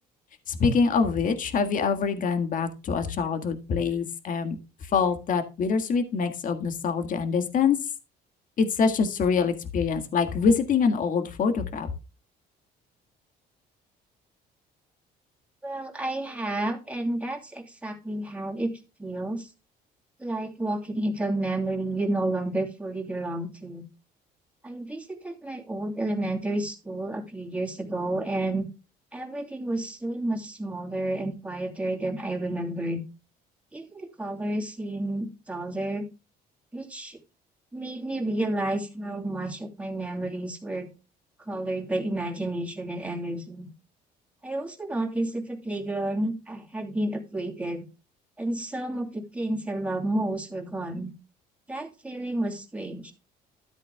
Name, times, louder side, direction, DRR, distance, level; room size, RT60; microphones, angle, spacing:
voice 1, 0.5-4.6 4.9-7.8 8.6-11.9, left 5 dB, 50° left, 8 dB, 1.7 m, -25 dB
voice 2, 15.6-18.7 19.0-19.5 20.2-23.8 24.6-28.7 29.1-33.0 33.7-36.1 36.7-37.2 37.7-40.9 41.4-43.7 44.4-47.8 48.4-51.1 51.7-53.1, right 1 dB, 10° right, 1 dB, 2.8 m, -31 dB
13.0 x 8.3 x 2.2 m, 0.30 s
cardioid pair, 110°, 17 cm